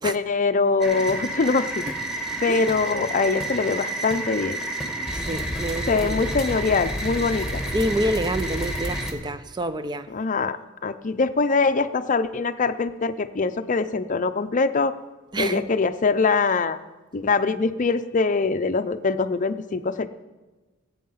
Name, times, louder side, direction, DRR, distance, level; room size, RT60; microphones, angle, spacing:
voice 1, 0.0-1.8 2.4-4.6 5.9-7.6 10.1-10.6 10.8-14.9 15.4-16.8 17.1-20.1, left 4 dB, 40° left, 0.5 m, -23 dB
sound 1, 0.8-9.1, right 1 dB, 5° right, 1.5 m, -30 dB
voice 2, 5.1-6.2 7.7-10.1 15.3-15.6, right 1 dB, 20° right, 0.4 m, -27 dB
15.5 x 8.5 x 5.6 m
head